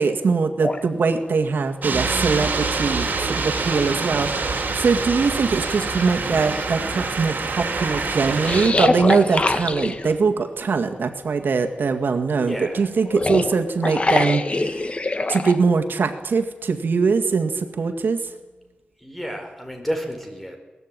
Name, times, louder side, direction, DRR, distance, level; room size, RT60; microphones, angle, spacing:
voice 1, 0.0-14.9 15.3-18.2, right 4 dB, 85° right, 5 dB, 2.0 m, -22 dB
sound 1, 0.6-0.8 2.6-2.7 3.2-4.2 4.8-4.9 5.5-6.6 8.4-10.2 13.0-15.6, left 2 dB, 35° left, 1.4 m, -24 dB
sound 2, 1.8-8.7, right 3 dB, 60° right, 4.4 m, -26 dB
voice 2, 12.4-12.9 19.0-20.6, equal, 5° left, 4 dB, 4.7 m, -30 dB
23.0 x 19.0 x 9.0 m, 1.2 s
wide cardioid pair, 130°, 3 cm